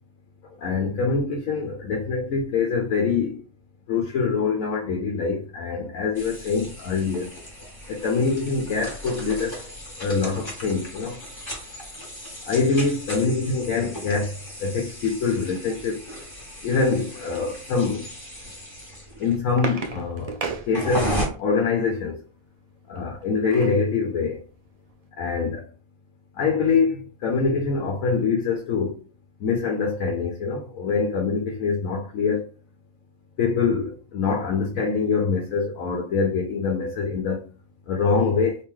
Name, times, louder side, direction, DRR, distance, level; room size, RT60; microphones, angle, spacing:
voice 1, 0.6-3.4 3.9-7.3 7.9-9.5 10.0-11.2 12.5-16.0 16.6-18.0 19.2-20.3 20.7-22.2 22.9-24.4 25.2-25.6 26.4-29.0 29.4-32.5 33.4-37.4 37.9-38.6, left 4 dB, 75° left, 1.0 m, -24 dB
sound 1, 6.1-21.3, equal, 15° left, 1.2 m, -36 dB
sound 2, 18.9-21.4 23.0-23.8 24.3-24.4 24.7-24.9, right 5 dB, 80° right, 0.3 m, -34 dB
3.0 x 2.9 x 3.5 m
omnidirectional pair, 1.4 m